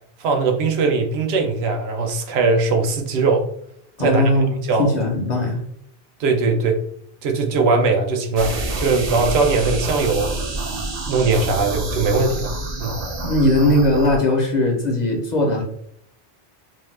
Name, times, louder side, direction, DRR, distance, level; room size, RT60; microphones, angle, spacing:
voice 1, 0.2-3.4 4.0-4.3 4.6-4.9 6.2-6.8 7.2-10.3 11.1-12.5 12.8-12.9, right 3 dB, 85° right, 4 dB, 0.8 m, -20 dB
voice 2, 4.0-5.6 13.2-15.6, left 1 dB, 50° left, 1 dB, 0.6 m, -19 dB
sound 1, 8.4-14.2, right 2 dB, 50° right, 0.5 m, -27 dB
2.7 x 2.1 x 3.1 m, 0.69 s
omnidirectional pair, 1.0 m